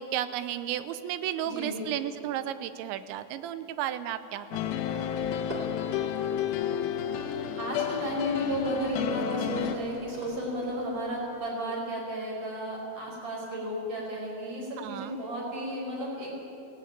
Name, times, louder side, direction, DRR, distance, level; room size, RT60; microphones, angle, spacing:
voice 1, 0.0-4.7 9.6-9.9 14.8-15.2, right 11 dB, 80° right, 12 dB, 3.0 m, -33 dB
voice 2, 1.4-1.8 7.6-16.4, equal, 45° right, -4 dB, 6.4 m, -33 dB
sound 1, 4.5-9.8, left 9 dB, 75° left, 2.8 m, -31 dB
sound 2, 4.8-11.5, right 1 dB, 15° right, 1.9 m, -45 dB
18.0 x 17.5 x 9.2 m, 2.7 s
omnidirectional pair, 5.3 m